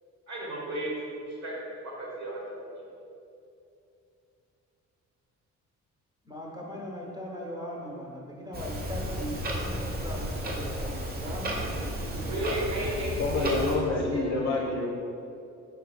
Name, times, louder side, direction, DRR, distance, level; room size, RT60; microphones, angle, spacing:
voice 1, 0.3-0.9 1.3-1.6 1.8-2.6 12.2-13.1 13.4-13.6 14.1-14.6, right 1 dB, 65° right, -4 dB, 1.4 m, -34 dB
voice 2, 6.2-13.3, equal, 15° right, -3 dB, 1.0 m, -40 dB
Clock, 8.5-13.8, equal, 30° right, 0.8 m, -33 dB
voice 3, 13.2-14.9, left 3 dB, 45° left, -1 dB, 0.6 m, -28 dB
4.6 x 4.5 x 2.4 m, 2.7 s
cardioid pair, 90°, 30 cm